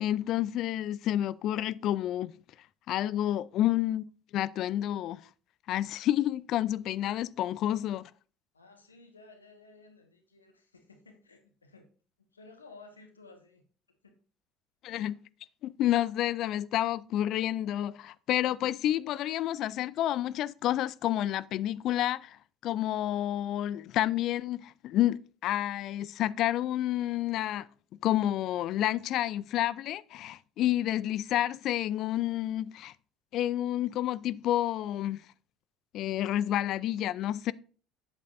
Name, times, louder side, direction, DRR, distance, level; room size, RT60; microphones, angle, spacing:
voice 1, 0.0-2.3 2.9-5.2 5.7-8.1 14.8-15.2 15.6-27.7 28.0-32.9 33.3-35.2 35.9-37.5, left 13 dB, 55° left, 0.3 m, -29 dB
voice 2, 8.5-11.9 12.3-13.6 14.0-14.2, left 3 dB, 85° left, 1.3 m, -55 dB
9.0 x 8.2 x 2.6 m
figure-of-eight pair, 60°, 0 cm